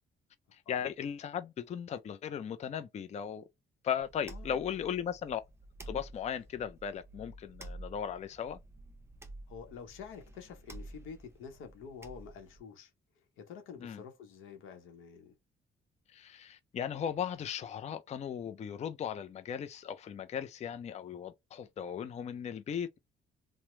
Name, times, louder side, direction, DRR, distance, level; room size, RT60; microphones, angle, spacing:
voice 1, 0.5-3.4 3.8-5.4 5.9-8.6 13.8-14.0 16.1-23.0, left 8 dB, 35° left, 0.4 m, -37 dB
sound 1, 4.0-12.6, right 1 dB, 15° right, 0.6 m, -50 dB
voice 2, 4.3-4.8 9.5-12.9 13.4-15.3, left 6 dB, 85° left, 0.8 m, -48 dB
3.0 x 2.0 x 3.0 m
cardioid pair, 90°, 20 cm